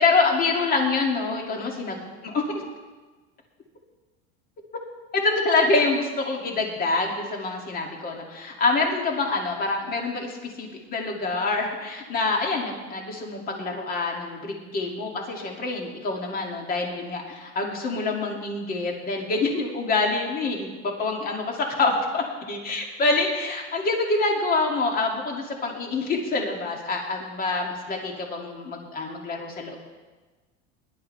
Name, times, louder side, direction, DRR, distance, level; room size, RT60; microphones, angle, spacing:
voice 1, 0.0-2.0 2.2-2.6 5.1-29.8, left 3 dB, 30° left, 0 dB, 2.5 m, -26 dB
21.0 x 11.5 x 3.4 m, 1.3 s
cardioid pair, 145°, 30 cm